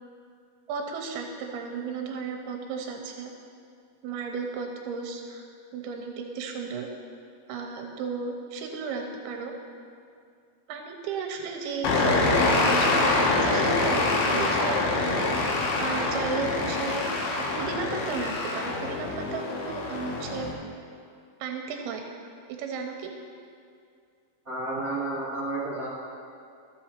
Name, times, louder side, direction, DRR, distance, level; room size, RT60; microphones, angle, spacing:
voice 1, 0.7-3.3 4.0-5.5 5.7-6.9 7.5-9.5 10.7-15.3 15.8-17.0 17.4-20.5 21.4-22.0 22.6-23.1, right 5 dB, 85° right, 3 dB, 2.6 m, -34 dB
sound 1, 11.8-20.5, left 2 dB, 80° left, 3.0 m, -25 dB
voice 2, 24.4-25.9, right 2 dB, 70° right, -10 dB, 0.8 m, -31 dB
14.0 x 6.2 x 4.3 m, 2.3 s
omnidirectional pair, 4.5 m